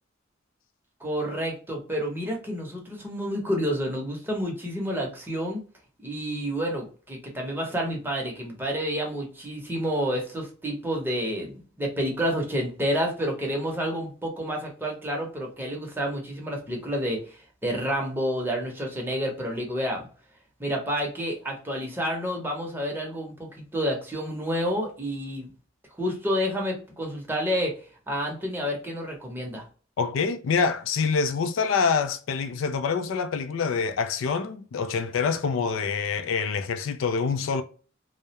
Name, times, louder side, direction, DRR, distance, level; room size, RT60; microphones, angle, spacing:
voice 1, 1.0-5.6 6.0-20.1 20.6-25.5 26.0-27.7 28.1-29.6, equal, 10° right, 0.7 m, -29 dB
voice 2, 30.0-37.6, left 5 dB, 85° left, 0.4 m, -26 dB
2.3 x 2.0 x 2.8 m
head